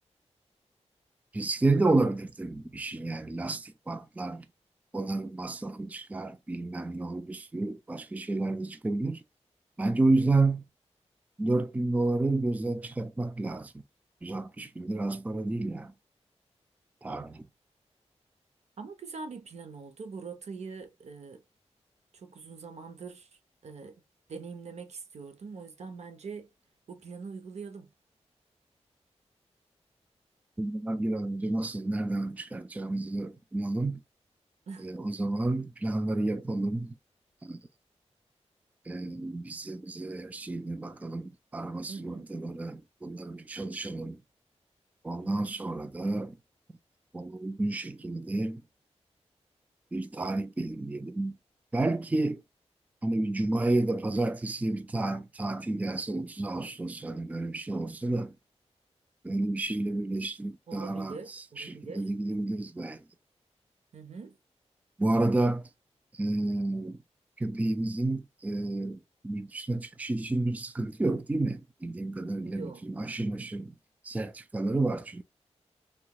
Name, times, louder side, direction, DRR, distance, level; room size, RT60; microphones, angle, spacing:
voice 1, 1.3-4.5 4.9-9.2 9.8-10.6 11.4-13.7 14.2-15.9 17.0-17.5 30.6-34.0 34.8-36.9 37.4-37.6 38.9-44.2 45.0-46.3 47.1-48.6 49.9-51.4 51.7-52.4 53.0-58.3 59.2-63.0 65.0-65.7 66.2-67.0 67.4-73.7 74.0-75.2, right 2 dB, 15° right, 0.4 m, -30 dB
voice 2, 18.8-21.4 22.1-23.3 23.6-24.0 24.3-26.5 26.9-27.9 34.7-34.9 41.9-42.3 45.2-45.6 60.7-62.1 63.9-64.4 72.4-72.9, right 4 dB, 70° right, 0.7 m, -43 dB
3.3 x 2.9 x 2.3 m
wide cardioid pair, 105°, 12 cm